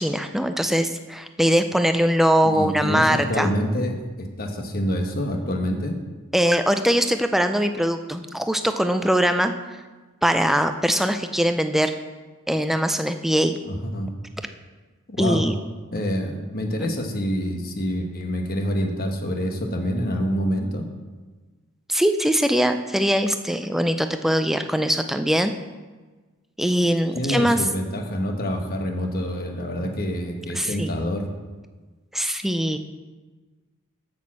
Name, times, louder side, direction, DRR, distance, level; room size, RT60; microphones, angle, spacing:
voice 1, 0.0-3.6 6.3-9.5 10.2-11.9 12.5-13.6 15.2-15.5 16.8-16.9 21.9-25.5 26.6-27.6 30.6-30.9 32.1-32.8, equal, ahead, 8 dB, 0.4 m, -21 dB
voice 2, 2.4-6.0 13.7-14.1 15.1-15.4 15.9-20.9 27.1-31.3, equal, 45° left, 3 dB, 1.1 m, -26 dB
6.9 x 6.3 x 7.3 m, 1.3 s
head